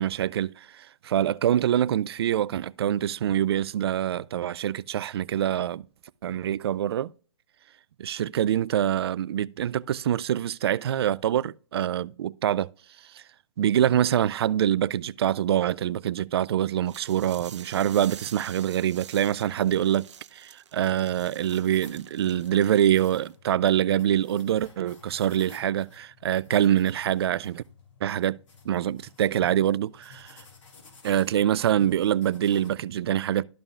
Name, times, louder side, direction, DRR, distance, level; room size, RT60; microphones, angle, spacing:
voice 1, 0.0-5.8 6.2-7.1 8.0-12.7 13.1-13.2 13.6-27.6 28.0-28.4 28.7-30.4 31.0-33.4, right 10 dB, 55° right, 0.4 m, -25 dB
sound 1, 16.9-23.4, right 8 dB, 70° right, 0.8 m, -48 dB
sound 2, 21.4-32.7, left 5 dB, 85° left, 3.4 m, -53 dB
13.0 x 5.3 x 2.4 m
hypercardioid pair, 150°, 16 cm